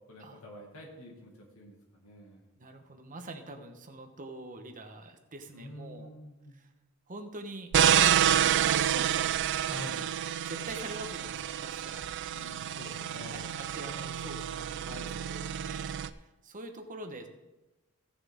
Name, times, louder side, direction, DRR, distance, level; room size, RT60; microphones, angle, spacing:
voice 1, 0.1-2.4 5.5-6.6 9.7-10.1 12.3-13.6 14.9-15.2, left 1 dB, 65° left, -2 dB, 1.9 m, -47 dB
voice 2, 2.6-6.1 6.5-6.7 7.1-7.7 8.3-9.9 10.5-12.1 13.2-14.7 15.1-17.3, right 2 dB, 35° right, 5 dB, 1.1 m, -44 dB
sound 1, 7.7-16.1, right 10 dB, 55° right, 0.4 m, -28 dB
sound 2, 10.7-11.5 11.9-12.4 12.7-14.2 14.5-14.6, right 1 dB, 80° right, 1.5 m, -54 dB
16.5 x 7.2 x 3.6 m, 1.0 s
head